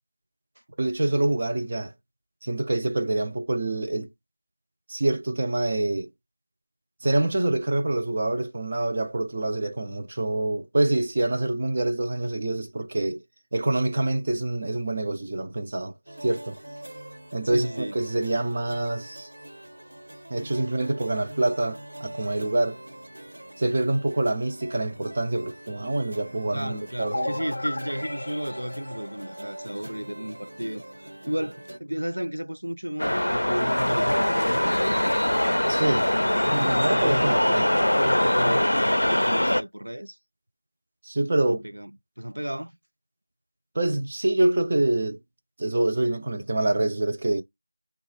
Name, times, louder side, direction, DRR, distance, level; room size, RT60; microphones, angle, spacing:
voice 1, 0.8-1.9 2.4-4.1 4.9-6.1 7.0-13.2 13.5-15.9 16.2-16.6 17.3-19.3 20.3-22.8 23.6-27.4 35.7-36.1 36.5-37.7 41.0-41.6 43.7-45.2 45.6-47.4, right 2 dB, 25° right, 0.5 m, -26 dB
sound 1, 16.1-31.8, right 1 dB, 55° right, 1.4 m, -43 dB
voice 2, 17.4-18.0 26.5-34.8 36.2-40.2 41.5-42.7, equal, 85° right, 0.5 m, -33 dB
sound 2, 27.1-29.9, left 2 dB, 40° left, 0.7 m, -35 dB
sound 3, 33.0-39.6, left 1 dB, 85° left, 0.4 m, -22 dB
3.9 x 2.4 x 4.6 m
figure-of-eight pair, 175°, 0 cm